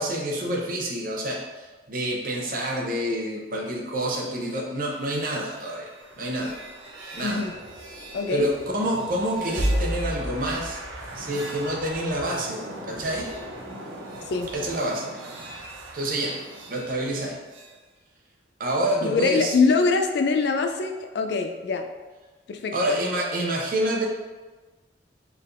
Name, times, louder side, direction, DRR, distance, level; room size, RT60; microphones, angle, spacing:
voice 1, 0.0-5.9 6.2-6.6 7.1-7.4 8.3-10.8 11.1-13.3 14.5-15.1 15.9-17.4 18.6-19.5 22.7-24.1, right 1 dB, 45° right, 0 dB, 0.6 m, -28 dB
sound 1, 4.9-17.7, equal, 90° right, 0.7 m, -35 dB
voice 2, 7.2-7.5 8.1-8.5 14.3-14.5 19.0-21.9 22.5-23.0, left 4 dB, 60° left, 5 dB, 0.4 m, -23 dB
4.6 x 3.3 x 2.5 m, 1.3 s
head